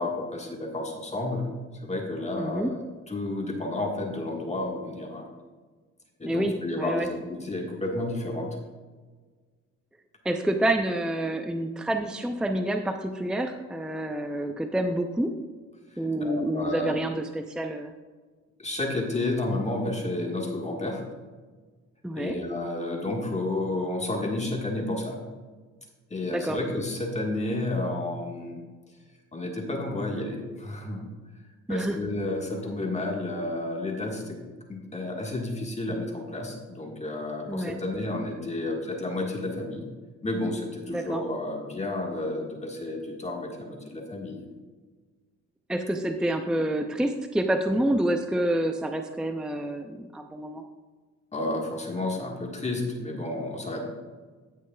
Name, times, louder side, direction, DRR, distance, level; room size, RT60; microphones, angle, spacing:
voice 1, 0.0-1.5 1.7-2.8 3.1-5.3 6.2-8.5 15.9-17.0 18.6-21.0 22.1-25.2 26.1-28.6 29.3-31.1 31.3-31.4 31.7-34.4 34.7-39.9 40.2-44.4 51.3-53.9, left 2 dB, 20° left, 0 dB, 1.6 m, -31 dB
voice 2, 2.4-2.7 6.2-7.1 10.2-15.3 16.0-17.9 22.0-22.4 26.3-26.6 31.7-32.0 37.5-37.8 40.9-41.2 45.7-50.6, right 1 dB, 5° right, 5 dB, 0.5 m, -28 dB
16.5 x 6.3 x 2.3 m, 1.4 s
cardioid pair, 90°, 30 cm